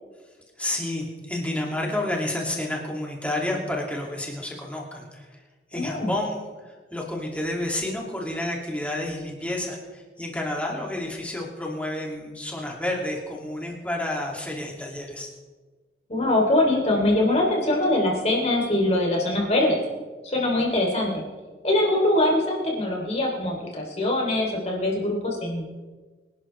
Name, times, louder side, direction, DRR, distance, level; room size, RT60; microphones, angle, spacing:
voice 1, 0.6-5.4 5.7-15.3, left 1 dB, 10° left, -1 dB, 2.6 m, -30 dB
voice 2, 5.7-6.1 16.1-19.8 20.2-21.2 21.6-25.6, left 1 dB, 35° left, -1 dB, 3.3 m, -23 dB
25.0 x 11.5 x 3.4 m, 1.3 s
head